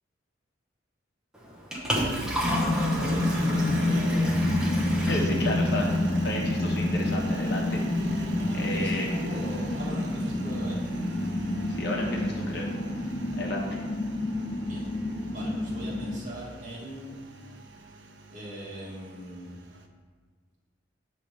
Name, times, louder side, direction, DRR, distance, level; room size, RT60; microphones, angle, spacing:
Liquid, 1.3-6.3, equal, 5° right, 0.7 m, -33 dB
Engine, 1.9-19.8, right 2 dB, 65° right, 0.5 m, -39 dB
sound 1, 2.4-16.2, left 1 dB, 25° left, 0.4 m, -28 dB
voice 1, 2.9-4.4 4.9-5.2 8.3-10.9 14.6-14.9 15.3-17.1 18.3-19.5, equal, 40° right, -5 dB, 1.5 m, -40 dB
voice 2, 5.0-6.0 6.2-9.1 11.7-12.7 13.4-13.8, left 1 dB, 60° left, -1 dB, 0.9 m, -33 dB
6.9 x 3.1 x 5.0 m, 1.5 s
head